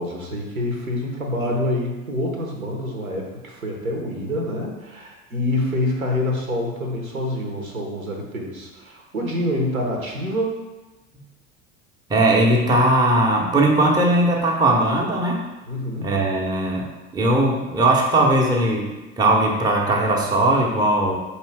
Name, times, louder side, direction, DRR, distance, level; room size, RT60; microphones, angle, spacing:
voice 1, 0.0-10.6 15.7-16.2, left 1 dB, 90° right, 0 dB, 0.8 m, -26 dB
voice 2, 12.1-15.4 16.0-21.2, right 1 dB, 10° right, -1 dB, 0.5 m, -19 dB
4.3 x 2.8 x 3.3 m, 1.1 s
figure-of-eight pair, 75°, 41 cm